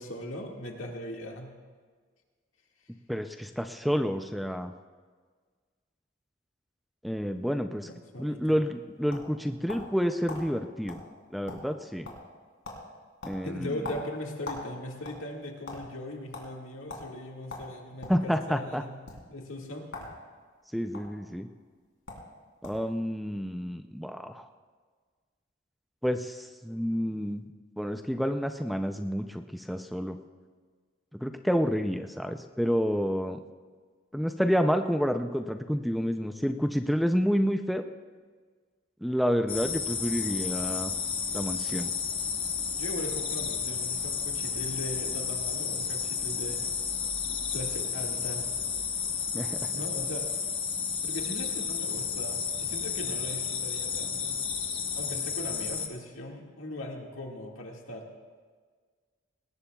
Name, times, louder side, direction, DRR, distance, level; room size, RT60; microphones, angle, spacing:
voice 1, 0.0-1.5 7.8-8.6 13.4-19.0 19.3-19.8 42.8-46.7 47.5-48.5 49.7-50.3 51.0-54.4 55.0-58.1, left 1 dB, 90° left, 0 dB, 2.0 m, -39 dB
voice 2, 3.1-4.7 7.0-7.9 8.2-11.0 11.3-12.1 13.2-13.8 18.1-18.8 20.7-21.5 22.6-24.5 26.0-27.5 27.8-30.2 31.1-33.4 34.1-37.8 39.0-40.9 41.3-41.9 49.3-49.7, equal, ahead, 7 dB, 0.4 m, -29 dB
sound 1, 8.5-10.0 10.3-10.4 10.9-11.0 11.3-11.8 12.0-12.4 12.6-12.8 13.2-14.7 15.0-15.8 16.3-16.5 16.9-17.1 17.5-18.2 19.0-19.2 19.9-20.1 20.4-21.0 21.7-21.8 22.1-22.3 22.6-22.9, left 3 dB, 75° left, 3.4 m, -41 dB
sound 2, 39.5-55.9, left 6 dB, 25° left, 1.0 m, -32 dB
20.0 x 18.5 x 2.3 m, 1.5 s
head